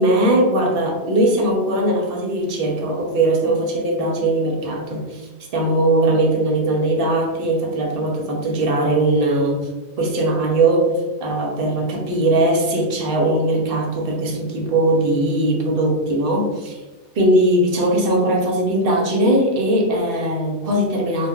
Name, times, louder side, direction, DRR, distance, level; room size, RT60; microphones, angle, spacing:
voice 1, 0.0-9.7 10.0-16.8 17.1-21.3, right 1 dB, 60° right, 0 dB, 0.8 m, -20 dB
2.2 x 2.2 x 3.6 m, 1.1 s
omnidirectional pair, 1.2 m